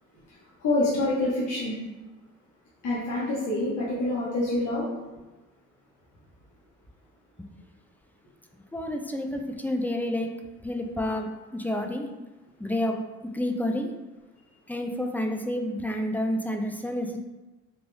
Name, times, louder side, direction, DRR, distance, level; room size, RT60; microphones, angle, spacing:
voice 1, 0.3-1.8 2.8-4.9, left 2 dB, 80° left, -8 dB, 1.2 m, -27 dB
voice 2, 8.7-10.3 10.6-12.1 12.6-13.0 13.3-13.9 14.7-17.2, left 1 dB, 5° left, 3 dB, 0.4 m, -29 dB
3.8 x 2.4 x 3.3 m, 1.1 s
cardioid pair, 90°, 30 cm